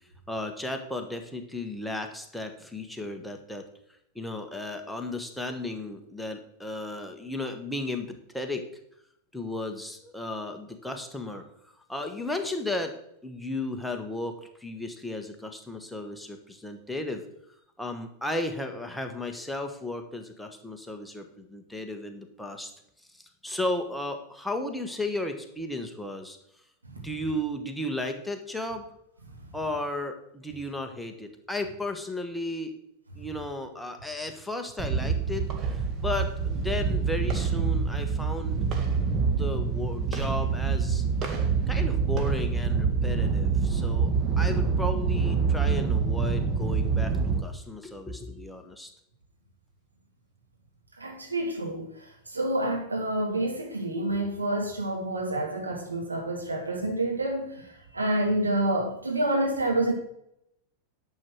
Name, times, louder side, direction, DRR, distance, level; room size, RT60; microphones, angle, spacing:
voice 1, 0.3-3.6 4.1-8.6 9.3-11.4 11.9-12.9 13.2-17.2 17.8-22.7 23.1-26.4 27.0-28.8 29.5-32.7 33.2-38.6 39.2-41.0 41.7-48.9, left 2 dB, 5° left, 4 dB, 1.5 m, -34 dB
sound 1, 34.8-47.4, right 5 dB, 30° right, 1.8 m, -26 dB
voice 2, 51.0-59.9, right 1 dB, 80° right, 1 dB, 2.6 m, -28 dB
10.5 x 7.2 x 6.3 m, 0.76 s
figure-of-eight pair, 90°, 0 cm